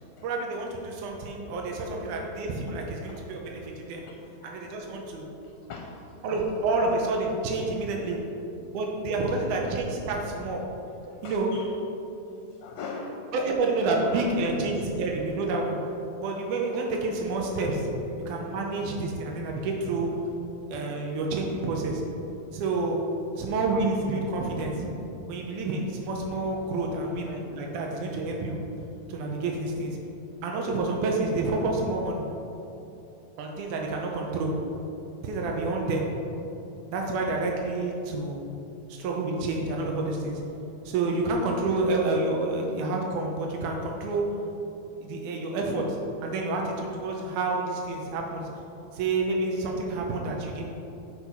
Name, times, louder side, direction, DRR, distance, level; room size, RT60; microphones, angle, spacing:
voice 1, 0.2-4.0 4.4-5.3 6.2-8.2 8.7-10.6 11.2-11.5 13.3-15.8 16.2-17.8 18.3-20.1 20.7-22.0 22.5-23.0 23.3-24.9 25.3-28.6 29.1-30.0 30.4-32.3 33.4-34.5 35.2-36.1 36.9-38.4 38.9-40.4 40.8-44.3 45.0-46.0 46.2-48.5 48.9-50.7, right 3 dB, 80° right, 0 dB, 2.3 m, -29 dB
voice 2, 1.3-1.8 2.7-2.8 4.0-4.8 5.4-6.0 8.6-8.7 11.2-11.7 12.2-13.3 14.0-14.2 18.6-18.9 20.7-20.8 26.8-27.1 27.6-27.7, left 4 dB, 75° left, 1 dB, 1.7 m, -43 dB
8.7 x 4.6 x 5.5 m, 2.9 s
omnidirectional pair, 3.5 m